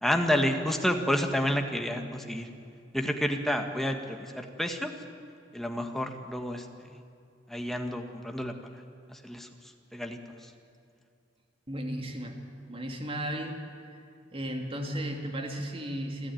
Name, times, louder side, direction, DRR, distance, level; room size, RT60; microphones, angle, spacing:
voice 1, 0.0-2.5 2.9-4.9 5.5-6.6 7.5-8.5 9.1-9.5 9.9-10.2, equal, ahead, 4 dB, 1.6 m, -29 dB
voice 2, 11.7-12.4 12.7-13.6 13.9-14.0 14.3-16.3, right 1 dB, 30° right, 3 dB, 2.6 m, -35 dB
28.0 x 12.5 x 9.4 m, 2.4 s
head